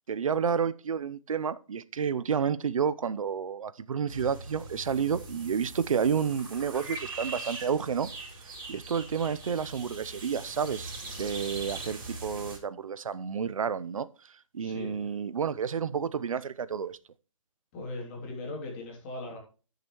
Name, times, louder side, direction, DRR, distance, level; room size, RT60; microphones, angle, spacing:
voice 1, 0.1-8.1 8.7-10.9 11.2-14.1 14.5-17.0, right 7 dB, 80° right, 0.8 m, -30 dB
sound 1, 4.1-12.6, right 2 dB, 45° right, 4.3 m, -41 dB
voice 2, 14.6-15.1 17.7-19.4, left 2 dB, 25° left, 2.9 m, -39 dB
14.5 x 6.7 x 3.1 m
hypercardioid pair, 170°, 17 cm